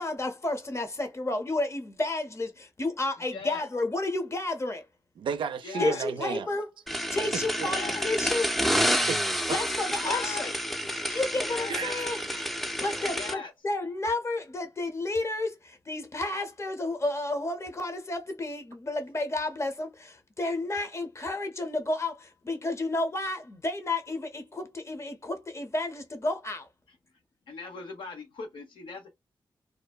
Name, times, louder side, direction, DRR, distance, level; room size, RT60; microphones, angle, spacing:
voice 1, 0.0-4.8 5.8-6.7 7.1-8.5 9.5-10.5 11.1-12.2 12.8-26.7, left 2 dB, 35° left, 0.7 m, -31 dB
voice 2, 3.3-3.6 5.6-6.0 7.6-8.1 10.0-10.5 11.3-11.8 13.1-13.5 26.9-27.0 27.5-29.1, left 4 dB, 85° left, 0.8 m, -39 dB
voice 3, 5.2-6.5 6.9-7.7 9.0-9.6 11.7-12.5, right 7 dB, 85° right, 0.4 m, -34 dB
sound 1, 6.9-13.3, equal, ahead, 0.4 m, -29 dB
2.7 x 2.1 x 2.3 m
cardioid pair, 65°, 8 cm